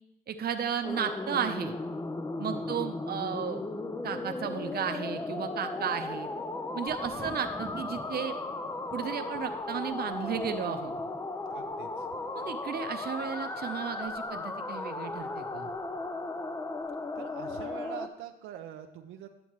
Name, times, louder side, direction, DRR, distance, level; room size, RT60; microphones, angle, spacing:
voice 1, 0.3-1.7 2.4-3.6 4.0-6.3 6.7-8.3 8.9-10.9 12.3-15.7, right 7 dB, 50° right, 7 dB, 0.8 m, -34 dB
sound 1, 0.8-18.1, left 2 dB, 15° left, 0.5 m, -36 dB
Thunder, 6.9-16.5 16.8-17.5, right 3 dB, 20° right, 0.7 m, -52 dB
voice 2, 11.5-12.1 17.2-19.3, right 10 dB, 90° right, 5 dB, 0.6 m, -44 dB
10.5 x 7.0 x 3.1 m, 0.88 s
cardioid pair, 90°, 20 cm